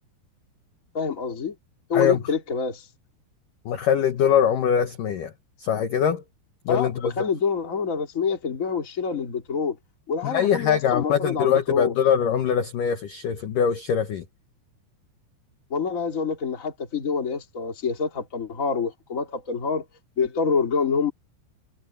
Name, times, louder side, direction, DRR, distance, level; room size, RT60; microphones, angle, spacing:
voice 1, 0.9-1.5 1.9-2.9 6.7-9.8 10.1-11.9 15.7-19.8 20.2-21.1, left 5 dB, 25° left, 2.2 m, -26 dB
voice 2, 3.7-5.3 5.6-6.2 6.7-7.1 10.2-14.2, left 8 dB, 65° left, 2.2 m, -22 dB
omnidirectional pair, 5.4 m